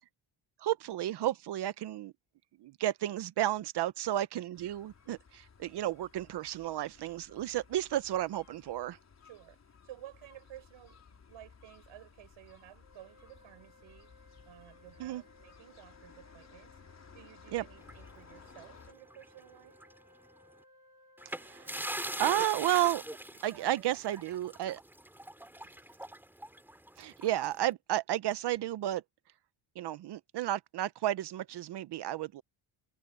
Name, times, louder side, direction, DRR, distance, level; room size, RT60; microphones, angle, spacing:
voice 1, 0.6-2.1 2.6-9.0 15.0-15.2 17.5-17.6 21.4-21.7 22.2-23.0 23.4-24.8 27.0-29.0 29.8-32.4, right 13 dB, 55° right, 0.8 m, -32 dB
sound 1, 4.5-18.9, left 6 dB, 35° left, 4.7 m, -58 dB
voice 2, 9.2-14.1 14.5-16.8 17.1-19.8 23.1-24.4, right 13 dB, 75° right, 5.6 m, -54 dB
sound 2, 12.8-22.5, left 1 dB, 50° left, 3.6 m, -62 dB
sound 3, 17.8-19.4 19.7-19.9 21.2-27.7, right 1 dB, 5° right, 3.5 m, -42 dB
cardioid pair, 140°, 48 cm